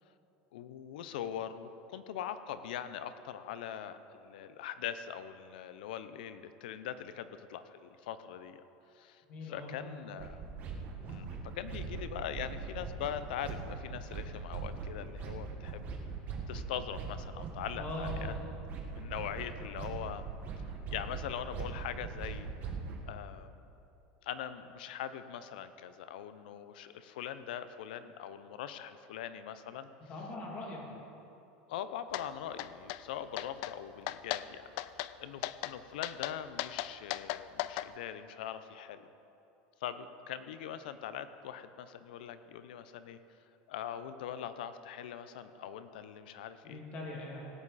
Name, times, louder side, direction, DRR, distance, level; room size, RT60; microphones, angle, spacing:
voice 1, 0.5-8.7 8.9-10.4 11.1-15.8 16.5-18.3 18.9-20.2 20.9-22.5 23.1-23.6 24.2-29.9 30.9-31.0 31.7-39.1 39.8-43.2 43.7-46.8, left 9 dB, 85° left, 12 dB, 0.7 m, -42 dB
voice 2, 9.3-10.0 17.7-18.4 30.1-30.8 46.6-47.5, left 2 dB, 30° left, -2 dB, 2.6 m, -41 dB
sound 1, 10.2-23.0, right 5 dB, 35° right, 1.5 m, -41 dB
sound 2, 32.1-32.3 32.6-33.0 33.4-33.7 34.1-34.4 34.8-35.1 35.4-35.7 36.0-37.9, left 16 dB, 55° left, 0.4 m, -36 dB
17.5 x 9.8 x 4.2 m, 2.8 s
supercardioid pair, 155°, 5 cm